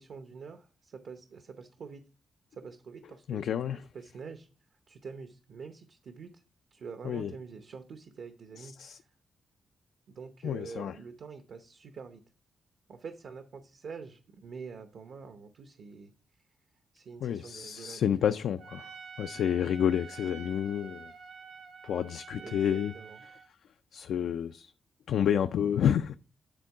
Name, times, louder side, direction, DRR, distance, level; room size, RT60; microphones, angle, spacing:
voice 1, 0.0-2.0 2.5-4.5 4.9-6.4 6.7-9.0 10.1-12.2 12.9-16.1 16.9-18.1 22.4-23.2, right 5 dB, 70° right, 0.8 m, -46 dB
voice 2, 3.3-3.8 7.0-7.3 8.6-9.0 10.4-11.0 17.2-18.9 19.2-21.1 21.8-22.9 23.2-23.4 23.9-24.7 25.1-26.1, left 9 dB, 90° left, 0.3 m, -29 dB
Trumpet, 18.6-23.5, right 5 dB, 85° right, 1.3 m, -48 dB
10.0 x 3.7 x 4.7 m
cardioid pair, 115°, 0 cm